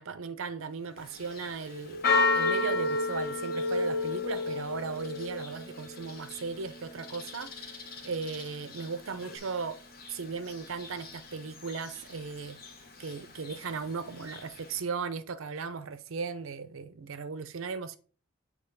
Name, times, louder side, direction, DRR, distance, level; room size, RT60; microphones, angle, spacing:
voice 1, 0.0-2.1 2.3-7.7 8.0-9.8 10.1-12.6 13.0-18.0, right 5 dB, 75° right, 0.6 m, -37 dB
Church bell, 1.0-14.8, left 3 dB, 45° left, 1.0 m, -35 dB
sound 1, 1.2-6.0 9.2-9.4, left 2 dB, 75° left, 1.0 m, -34 dB
7.9 x 3.0 x 5.2 m
head